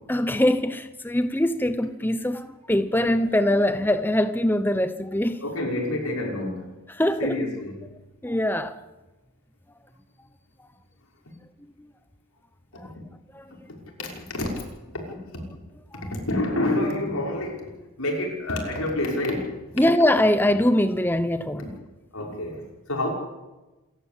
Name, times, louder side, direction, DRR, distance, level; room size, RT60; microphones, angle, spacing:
voice 1, 0.1-5.4 6.9-7.4 8.2-8.8 12.8-12.9 13.3-13.5 19.8-21.7, left 1 dB, 10° left, 0.9 m, -22 dB
voice 2, 5.4-6.7 7.2-7.8 12.8-13.0 13.5-14.5 14.9-15.4 16.0-17.7 18.0-19.6 21.6-21.7 22.1-22.6 22.9-23.1, left 1 dB, 75° left, 5.9 m, -28 dB
28.5 x 13.5 x 8.6 m
head